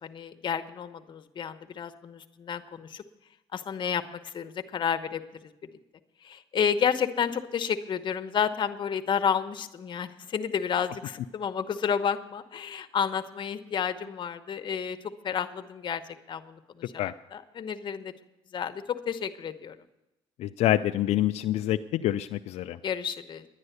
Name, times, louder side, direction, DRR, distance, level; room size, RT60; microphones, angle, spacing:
voice 1, 0.0-3.0 3.5-5.5 6.2-16.0 16.3-18.1 18.5-19.8 22.8-23.5, left 7 dB, 45° left, 9 dB, 1.0 m, -31 dB
voice 2, 20.4-22.8, left 13 dB, 75° left, 8 dB, 0.4 m, -26 dB
10.5 x 10.5 x 8.1 m, 0.95 s
cardioid pair, 110°, 11 cm